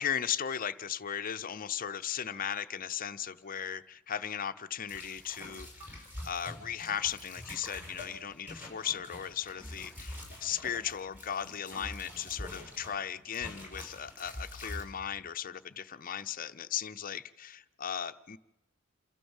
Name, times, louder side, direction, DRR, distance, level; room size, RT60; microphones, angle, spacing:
voice 1, 0.0-18.4, left 8 dB, 45° left, 12 dB, 0.7 m, -37 dB
sound 1, 4.9-13.0 13.3-14.8, left 1 dB, 10° right, 5.6 m, -45 dB
28.0 x 13.0 x 7.2 m, 0.98 s
head